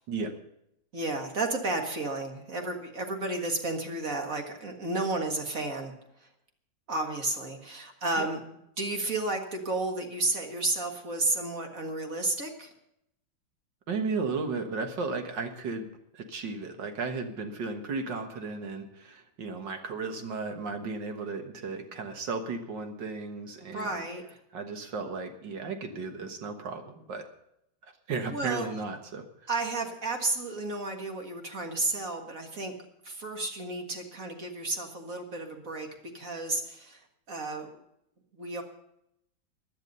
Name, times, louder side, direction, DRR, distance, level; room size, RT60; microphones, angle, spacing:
voice 1, 0.9-6.3 6.9-8.4 8.8-12.7 23.6-24.4 28.3-28.7 29.5-32.7 33.0-37.8 38.3-38.6, right 2 dB, 45° right, 3 dB, 2.0 m, -32 dB
voice 2, 13.9-24.0 24.5-27.3 27.8-29.2, right 4 dB, 60° right, 6 dB, 2.1 m, -35 dB
16.0 x 11.0 x 5.4 m, 0.79 s
omnidirectional pair, 2.2 m